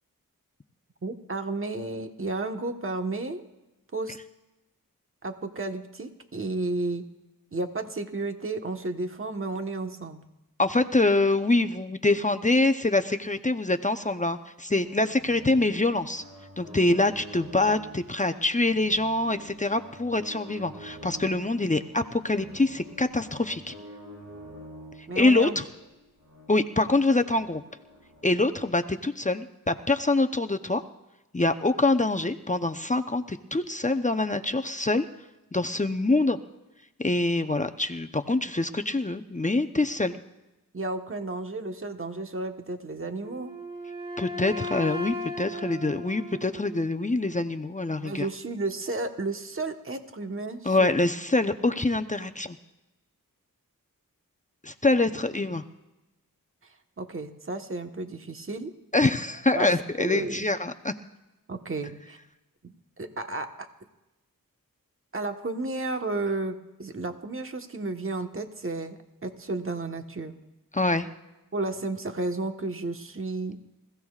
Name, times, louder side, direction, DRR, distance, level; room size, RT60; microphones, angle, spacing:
voice 1, 1.0-3.4 3.9-4.2 5.2-7.1 7.5-10.2 25.1-25.6 40.7-43.5 48.0-50.9 57.0-58.7 59.5-59.7 60.0-60.5 61.5-62.2 62.6-63.7 65.1-70.4 71.5-73.6, right 2 dB, 35° right, 5 dB, 1.3 m, -32 dB
voice 2, 10.6-16.2 16.6-23.7 25.2-25.6 26.5-27.6 28.2-30.8 31.3-35.0 35.5-36.4 37.0-40.2 44.2-48.3 50.6-52.6 54.6-55.6 58.9-60.9 70.7-71.1, left 2 dB, 20° left, 7 dB, 0.8 m, -25 dB
sound 1, 14.7-28.7, equal, 60° right, 7.1 m, -47 dB
Wind instrument woodwind instrument, 43.2-47.1, left 1 dB, 15° right, 3.1 m, -36 dB
27.5 x 16.0 x 2.4 m, 1.0 s
cardioid pair, 45°, 35 cm